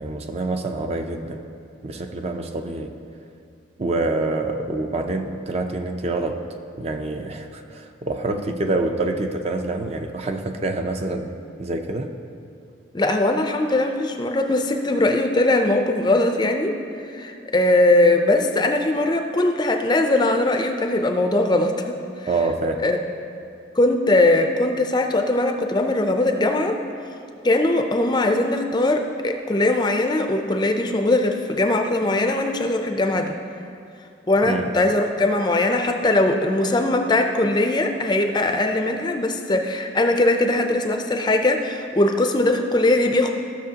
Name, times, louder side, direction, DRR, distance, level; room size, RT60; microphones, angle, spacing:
voice 1, 0.0-1.4 1.8-2.9 3.8-6.4 6.8-11.3 11.6-12.1 22.3-22.9 34.5-34.7, right 2 dB, 30° right, 5 dB, 0.4 m, -26 dB
voice 2, 12.9-16.8 17.1-21.8 22.8-23.0 23.7-26.8 27.4-33.3 34.3-43.3, left 2 dB, 20° left, 4 dB, 0.4 m, -20 dB
15.0 x 6.6 x 2.8 m, 2.4 s
head